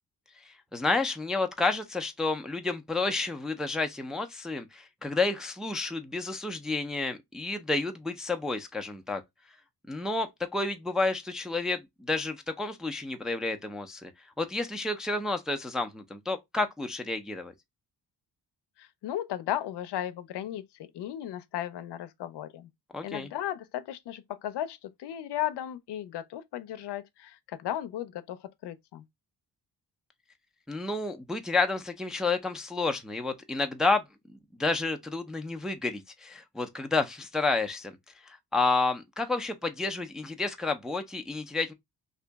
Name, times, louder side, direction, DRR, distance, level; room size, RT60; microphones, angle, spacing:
voice 1, 0.4-9.2 9.9-14.1 14.4-17.5 22.9-23.3 30.7-34.1 34.6-37.9 38.2-41.7, left 3 dB, ahead, 0.3 m, -30 dB
voice 2, 18.8-22.7 23.0-29.0, left 12 dB, 85° left, 0.6 m, -35 dB
2.9 x 2.7 x 3.3 m
cardioid pair, 120°, 40 cm